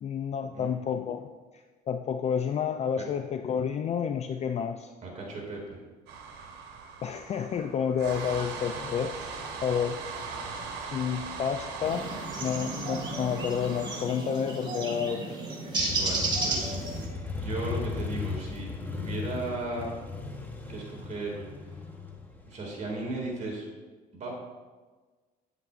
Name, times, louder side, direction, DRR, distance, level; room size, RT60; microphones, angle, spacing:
voice 1, 0.0-1.3 1.5-4.9 7.0-10.0 10.9-12.1 12.4-15.3, left 7 dB, 40° left, 7 dB, 0.4 m, -30 dB
voice 2, 5.0-5.8 15.9-17.0 17.3-19.9 20.7-21.7 22.5-23.7 24.1-24.3, right 2 dB, 45° right, -2 dB, 2.2 m, -36 dB
sound 1, 6.1-14.0, right 5 dB, 85° right, 1.1 m, -39 dB
sound 2, 11.8-17.1, right 2 dB, 25° right, 1.7 m, -32 dB
Motorcycle, 15.8-23.4, left 4 dB, 10° left, 1.0 m, -37 dB
9.1 x 7.9 x 2.5 m, 1.3 s
cardioid pair, 110°, 17 cm